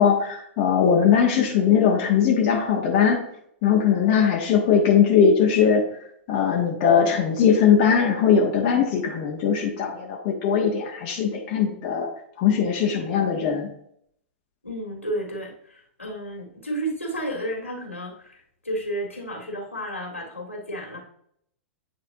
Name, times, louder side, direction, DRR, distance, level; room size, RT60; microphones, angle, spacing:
voice 1, 0.0-3.2 3.6-5.8 6.3-12.1 12.4-13.7, left 7 dB, 45° left, 0 dB, 1.1 m, -20 dB
voice 2, 14.6-21.0, right 1 dB, 85° left, -1 dB, 2.1 m, -32 dB
8.8 x 4.0 x 2.7 m, 0.67 s
figure-of-eight pair, 105°, 7 cm